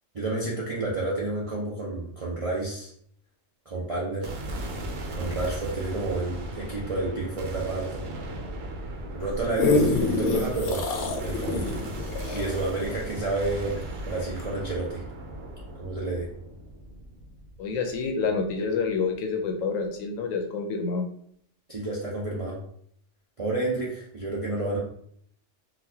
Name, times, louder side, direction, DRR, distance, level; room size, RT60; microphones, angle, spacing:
voice 1, 0.1-2.9 3.7-4.3 5.1-8.1 9.1-11.7 12.3-15.0 15.8-16.3 21.7-22.6 23.4-24.8, right 2 dB, 40° right, -5 dB, 0.5 m, -30 dB
sound 1, 4.2-18.5, right 1 dB, 80° right, 1.1 m, -37 dB
sound 2, 9.2-13.9 14.4-14.5, left 3 dB, 65° left, 0.8 m, -26 dB
voice 2, 17.6-21.0, left 4 dB, 85° left, 4 dB, 1.1 m, -28 dB
4.0 x 2.3 x 2.7 m, 0.65 s
omnidirectional pair, 1.3 m